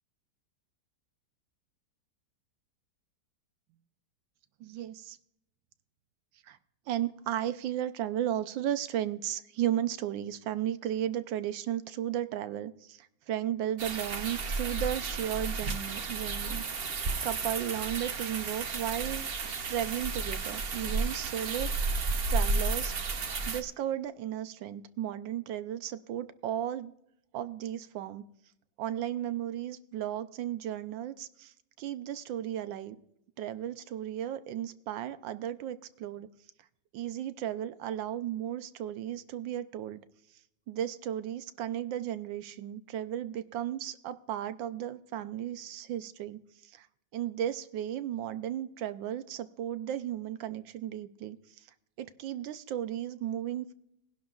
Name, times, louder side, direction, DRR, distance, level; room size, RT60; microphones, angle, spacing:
voice 1, 4.6-5.2 6.5-6.6 6.9-16.6 17.2-19.3 19.7-21.9 22.3-22.9 23.5-26.9 27.3-28.2 28.8-33.0 33.4-36.3 36.9-40.0 40.7-46.9 47.1-51.7 52.0-53.7, right 11 dB, 85° right, 12 dB, 1.4 m, -35 dB
sound 1, 13.8-23.6, right 3 dB, 50° right, 0.7 m, -32 dB
21.0 x 11.0 x 2.4 m, 0.77 s
omnidirectional pair, 2.0 m